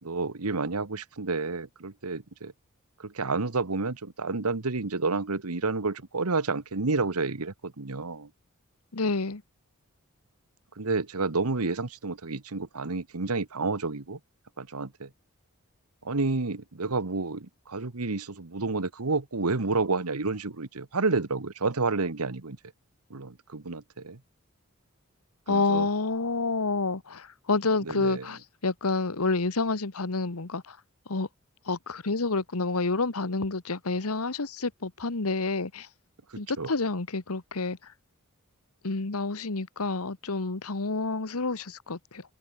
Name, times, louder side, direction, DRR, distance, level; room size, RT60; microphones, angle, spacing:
voice 1, 0.0-2.5 3.0-8.3 10.8-14.2 14.6-15.1 16.0-22.6 23.1-24.2 25.5-25.9 27.8-28.3 36.3-36.7, right 3 dB, 90° right, 1.3 m, -30 dB
voice 2, 8.9-9.4 25.5-30.8 31.1-31.3 31.7-35.9 36.4-37.8 38.8-42.2, left 3 dB, 80° left, 1.4 m, -29 dB
head